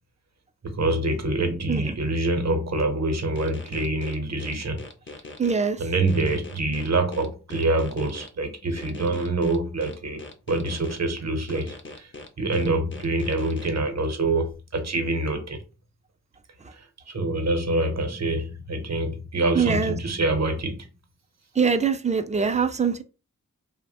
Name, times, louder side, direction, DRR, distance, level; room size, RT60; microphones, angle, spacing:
voice 1, 0.6-4.8 5.8-15.6 16.7-20.9, right 2 dB, 55° right, 0.7 m, -26 dB
sound 1, 3.4-5.6 6.1-8.3 8.8-11.0 11.5-13.7, left 2 dB, 35° left, 0.5 m, -41 dB
voice 2, 5.4-5.8 19.5-20.0 21.6-23.0, right 6 dB, 20° right, 0.4 m, -23 dB
2.9 x 2.1 x 2.8 m
wide cardioid pair, 45°, 32 cm